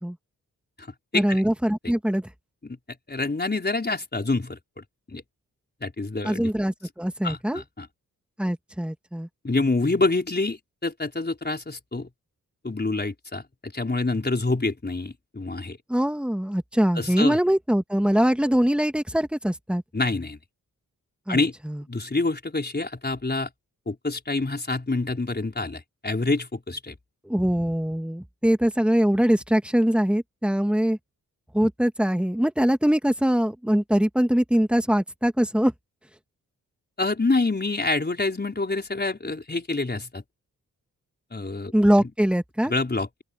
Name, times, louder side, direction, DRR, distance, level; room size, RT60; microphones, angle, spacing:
voice 1, 1.1-2.3 6.2-7.6 8.4-9.3 15.9-19.8 21.3-21.4 21.6-21.8 27.3-31.0 31.5-35.7 41.7-42.7, equal, 5° right, 2.1 m, -22 dB
voice 2, 3.1-4.6 5.1-5.2 5.8-6.5 7.2-7.9 9.4-12.1 12.6-15.8 17.0-17.4 19.9-20.4 21.3-21.5 21.9-23.5 23.9-26.9 37.0-40.2 41.3-41.7 42.6-43.2, left 3 dB, 30° left, 4.9 m, -27 dB
cardioid pair, 55°, 34 cm